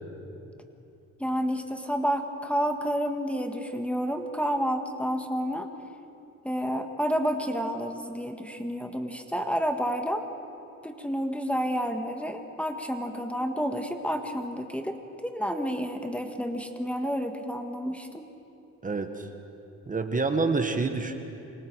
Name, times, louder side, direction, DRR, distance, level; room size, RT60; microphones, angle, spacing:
voice 1, 1.2-5.7 6.4-10.2 10.8-18.3, equal, 5° left, 5 dB, 1.6 m, -30 dB
voice 2, 18.8-19.3 19.9-21.2, right 3 dB, 25° right, 6 dB, 1.6 m, -27 dB
28.0 x 25.0 x 4.8 m, 2.8 s
cardioid pair, 90°, 30 cm